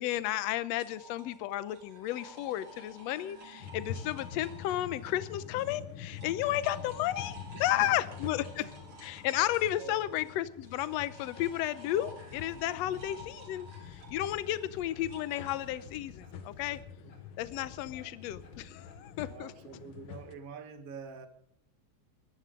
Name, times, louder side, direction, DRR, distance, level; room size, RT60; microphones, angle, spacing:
voice 1, 0.0-8.6 9.0-16.8 17.4-19.5, left 13 dB, 75° left, 15 dB, 1.8 m, -33 dB
sound 1, 0.8-5.8 6.1-15.6, right 1 dB, 70° right, 5.0 m, -53 dB
sound 2, 3.6-20.4, left 8 dB, 55° left, 1.7 m, -46 dB
voice 2, 7.5-7.9 8.2-8.7 9.8-10.0 12.7-13.0 14.4-14.5 17.0-17.1 17.9-18.1 19.2-21.3, right 6 dB, 35° right, 8 dB, 1.5 m, -47 dB
sound 3, 12.2-19.3, left 5 dB, 40° left, 3.9 m, -53 dB
21.5 x 14.5 x 3.8 m, 0.66 s
omnidirectional pair, 3.4 m